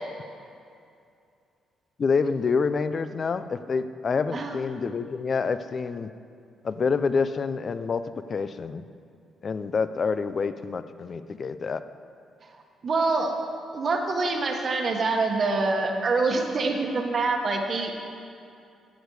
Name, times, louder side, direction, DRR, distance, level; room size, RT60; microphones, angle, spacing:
voice 1, 2.0-6.1 6.6-8.0 8.3-8.8 9.4-11.8, left 5 dB, 35° left, 12 dB, 0.4 m, -27 dB
voice 2, 12.8-13.3 13.7-17.9, right 3 dB, 35° right, 3 dB, 1.2 m, -25 dB
14.5 x 8.3 x 4.8 m, 2.5 s
cardioid pair, 160°, 0 cm